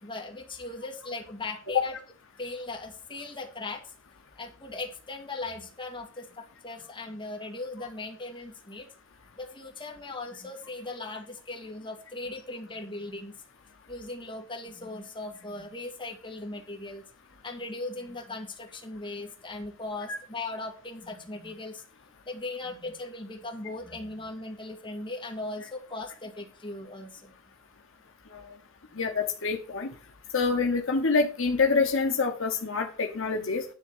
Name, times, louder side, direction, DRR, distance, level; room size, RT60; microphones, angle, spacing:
voice 1, 0.0-1.9 2.4-3.9 4.4-8.9 9.3-13.3 13.9-17.0 17.4-21.8 22.3-27.3, left 2 dB, 25° left, 1 dB, 2.2 m, -38 dB
voice 2, 28.9-29.9 30.3-33.6, left 4 dB, 65° left, 3 dB, 1.0 m, -26 dB
10.5 x 3.6 x 7.2 m, 0.38 s
head